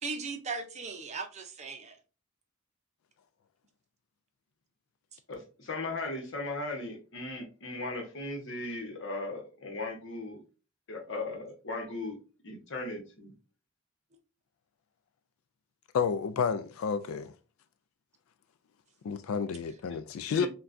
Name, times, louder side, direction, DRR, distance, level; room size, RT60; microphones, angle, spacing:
voice 1, 0.0-2.0 5.1-5.2, right 4 dB, 35° right, 0.6 m, -38 dB
voice 2, 5.3-10.4 10.9-12.2 12.4-13.3 20.3-20.5, left 2 dB, 60° left, 1.1 m, -37 dB
voice 3, 15.9-17.3 19.0-20.5, left 6 dB, 80° left, 0.3 m, -30 dB
5.9 x 2.3 x 2.6 m
head